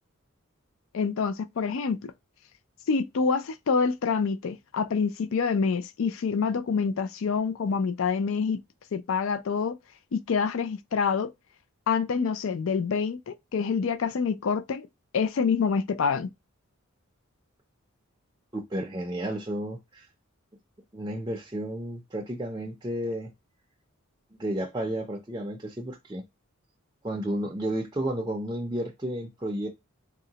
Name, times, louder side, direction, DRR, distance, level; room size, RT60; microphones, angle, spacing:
voice 1, 0.9-2.1 2.9-8.6 8.9-9.8 10.1-11.3 11.9-14.9 15.1-16.3, left 5 dB, 65° left, 0.4 m, -26 dB
voice 2, 18.5-20.1 20.9-23.3 24.4-26.2 27.0-29.7, right 1 dB, 20° right, 0.4 m, -32 dB
3.7 x 2.1 x 2.7 m
head